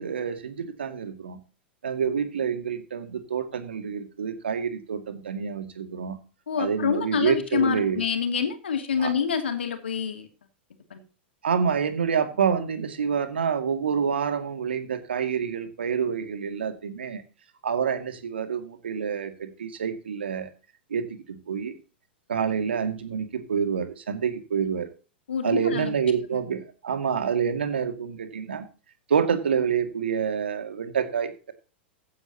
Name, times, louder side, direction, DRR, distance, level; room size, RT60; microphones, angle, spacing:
voice 1, 0.0-1.4 1.8-6.2 6.6-8.0 9.0-9.1 11.4-17.2 17.6-20.5 20.9-21.7 22.3-24.9 25.4-28.7 29.1-31.5, right 7 dB, 80° right, 8 dB, 2.2 m, -27 dB
voice 2, 6.5-10.3 10.9-11.0 25.3-25.9, left 7 dB, 80° left, 6 dB, 2.7 m, -27 dB
15.5 x 9.5 x 3.0 m, 0.35 s
hypercardioid pair, 95°, 6 cm